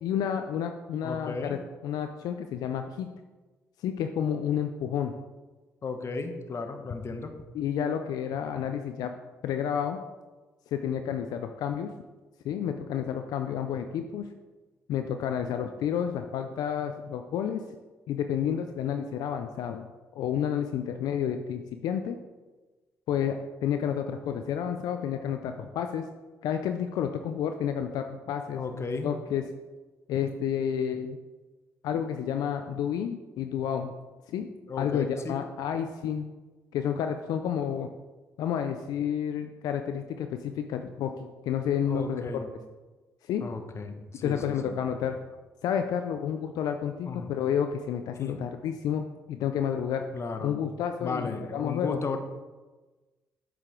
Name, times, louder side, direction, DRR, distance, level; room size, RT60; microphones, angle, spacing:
voice 1, 0.0-3.1 3.8-5.1 7.5-9.1 9.4-10.0 10.7-11.9 12.4-14.3 14.9-17.6 18.1-19.9 20.1-22.2 23.1-26.1 26.4-28.6 29.0-29.4 30.1-31.2 31.8-33.9 34.3-34.5 34.8-36.3 36.7-37.9 38.4-42.2 43.2-43.5 44.2-45.2 45.6-50.0 50.4-52.0, left 8 dB, 80° left, 6 dB, 0.4 m, -30 dB
voice 2, 1.0-1.6 5.8-7.3 28.5-29.1 34.6-35.3 41.9-42.6 43.4-44.8 47.0-47.3 48.2-48.5 50.1-50.6 51.0-52.2, left 4 dB, 45° left, 6 dB, 0.9 m, -35 dB
7.4 x 5.0 x 3.7 m, 1.2 s
supercardioid pair, 65°, 7 cm